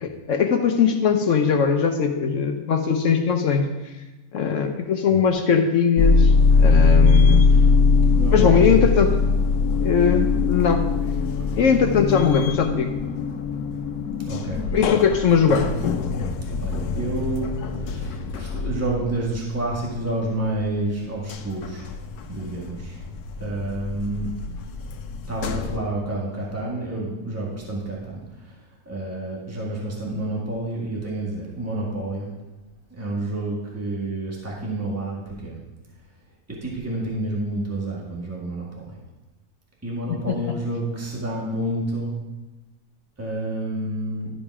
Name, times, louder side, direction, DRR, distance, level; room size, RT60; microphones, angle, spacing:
voice 1, 0.0-3.7 4.3-7.4 8.3-9.2 9.8-10.9 11.5-12.9 14.7-15.7 40.1-40.4, left 6 dB, 65° left, 6 dB, 1.0 m, -20 dB
sound 1, 6.0-20.5 20.9-25.8, left 4 dB, 85° left, 1.2 m, -22 dB
voice 2, 8.1-8.8 11.5-11.6 14.2-14.6 16.6-17.5 17.8-21.9 22.3-23.0 23.4-24.3 25.3-28.6 28.9-32.2 32.9-35.6 36.6-39.0 39.8-42.1 43.2-44.3, right 2 dB, 10° right, -4 dB, 1.8 m, -29 dB
12.0 x 5.2 x 4.8 m, 1.1 s
omnidirectional pair, 1.6 m